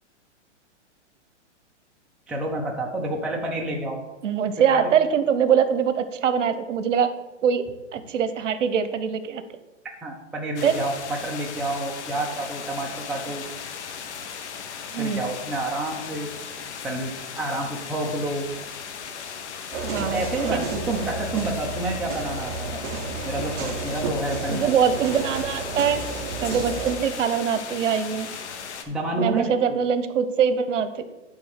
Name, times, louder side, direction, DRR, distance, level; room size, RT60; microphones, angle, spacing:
voice 1, 2.3-4.0 4.7-4.9 10.0-13.4 15.0-16.3 16.8-18.5 20.1-22.8 23.2-24.7 28.9-29.5, right 2 dB, 5° right, -1 dB, 0.5 m, -29 dB
voice 2, 4.2-7.1 7.4-7.6 7.9-9.4 10.6-10.8 14.9-15.2 19.8-20.2 20.5-20.7 24.5-26.0 26.4-28.3 29.2-31.1, right 7 dB, 75° right, 11 dB, 0.9 m, -23 dB
sound 1, 10.6-28.8, left 7 dB, 65° left, 1.1 m, -37 dB
sound 2, 19.7-27.0, right 3 dB, 25° right, 1.0 m, -32 dB
9.4 x 3.7 x 6.6 m, 1.0 s
hypercardioid pair, 145°, 37 cm